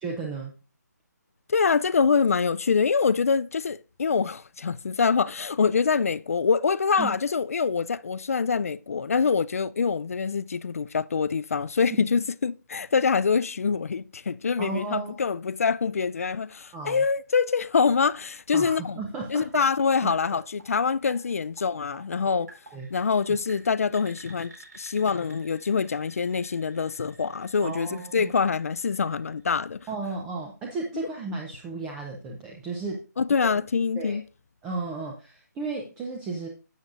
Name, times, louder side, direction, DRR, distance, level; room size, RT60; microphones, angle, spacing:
voice 1, 0.0-0.5 7.0-7.1 11.9-12.0 14.6-15.2 16.7-17.0 18.5-19.5 20.0-20.4 22.7-22.9 27.6-28.3 29.9-33.0 34.0-34.2 34.6-36.5, right 3 dB, 5° right, 0.5 m, -34 dB
voice 2, 1.5-19.0 19.3-22.5 22.9-29.9 33.2-34.2, left 5 dB, 50° left, 0.4 m, -25 dB
sound 1, 20.1-29.9, right 3 dB, 65° right, 4.4 m, -53 dB
11.5 x 8.0 x 2.5 m
hypercardioid pair, 170°, 10 cm